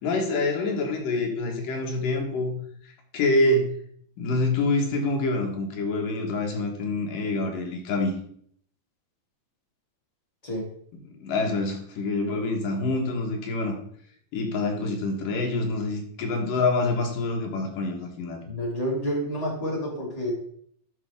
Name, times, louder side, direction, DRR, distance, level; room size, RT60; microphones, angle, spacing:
voice 1, 0.0-2.6 3.1-3.7 4.2-8.1 11.1-13.8 14.3-18.4, left 2 dB, 65° left, 1 dB, 3.0 m, -26 dB
voice 2, 18.5-20.3, equal, 10° left, -4 dB, 2.0 m, -29 dB
11.5 x 5.6 x 3.6 m, 0.64 s
omnidirectional pair, 4.3 m